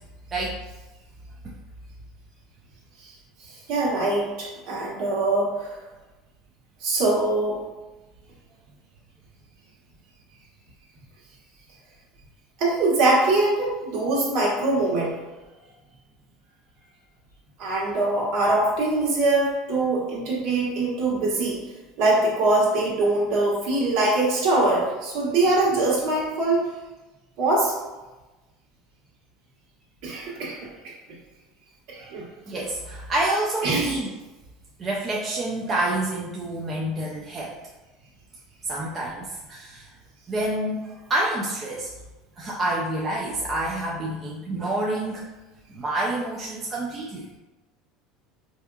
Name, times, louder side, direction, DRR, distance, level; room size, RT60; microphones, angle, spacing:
voice 1, 3.4-5.8 6.8-7.7 12.6-15.1 17.6-21.6 22.0-26.7 27.4-27.7 30.0-30.7 31.9-32.3 33.6-34.0, right 2 dB, 55° right, -4 dB, 1.3 m, -23 dB
voice 2, 32.5-34.1 34.8-37.6 38.6-39.9 40.3-41.9 42.4-45.3 45.7-47.2, right 1 dB, 20° right, -4 dB, 0.4 m, -28 dB
4.5 x 2.7 x 2.3 m, 1.1 s
cardioid pair, 160°, 0 cm